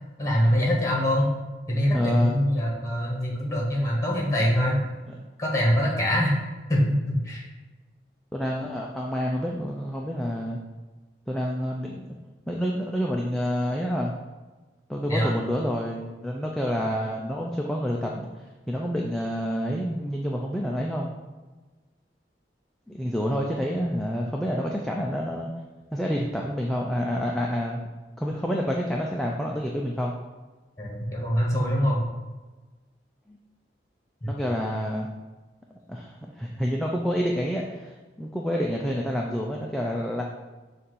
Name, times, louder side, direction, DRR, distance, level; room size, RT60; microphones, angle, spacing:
voice 1, 0.2-1.3 1.7-4.8 5.4-6.4 6.7-7.4 15.1-15.3 30.8-32.0 34.2-34.3, equal, 20° left, -3 dB, 1.3 m, -24 dB
voice 2, 1.9-2.4 5.1-5.2 8.3-10.6 11.3-12.1 12.5-14.1 14.9-18.3 18.7-21.1 22.9-25.5 25.9-27.8 28.2-30.2 33.3-33.4 34.3-35.1 35.9-40.2, equal, ahead, -2 dB, 0.4 m, -28 dB
6.9 x 2.5 x 5.4 m, 1.2 s
head